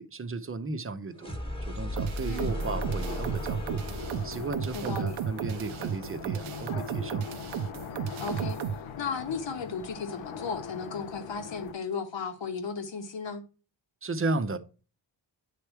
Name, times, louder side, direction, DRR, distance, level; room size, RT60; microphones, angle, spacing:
voice 1, 0.0-3.8 4.2-7.3 14.0-14.6, right 3 dB, 30° right, 0.7 m, -34 dB
sound 1, 1.1-7.0, equal, 10° left, 1.3 m, -37 dB
sound 2, 2.0-8.8, right 9 dB, 85° right, 0.6 m, -34 dB
sound 3, 2.5-11.7, left 6 dB, 85° left, 0.7 m, -41 dB
voice 2, 4.7-5.2 8.2-8.6 9.0-13.4, left 5 dB, 65° left, 1.2 m, -35 dB
8.4 x 3.4 x 4.5 m
cardioid pair, 75°, 47 cm